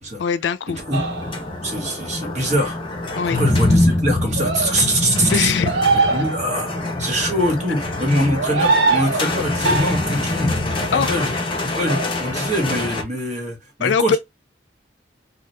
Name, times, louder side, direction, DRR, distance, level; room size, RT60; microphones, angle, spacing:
voice 1, 0.2-0.8 3.2-3.4 5.3-6.1 10.9-11.1 13.8-14.2, left 6 dB, 85° left, 0.4 m, -22 dB
sound 1, 0.7-13.0, left 2 dB, 30° left, 0.8 m, -24 dB
sound 2, 0.9-1.5 4.4-4.7 5.7-6.7 8.3-9.3 9.6-10.2 11.8-12.1, right 4 dB, 75° right, 0.7 m, -21 dB
voice 2, 1.6-2.8 3.3-5.5 6.1-10.5 10.9-11.3 11.7-14.2, equal, 45° right, 1.3 m, -23 dB
2.7 x 2.3 x 3.2 m
head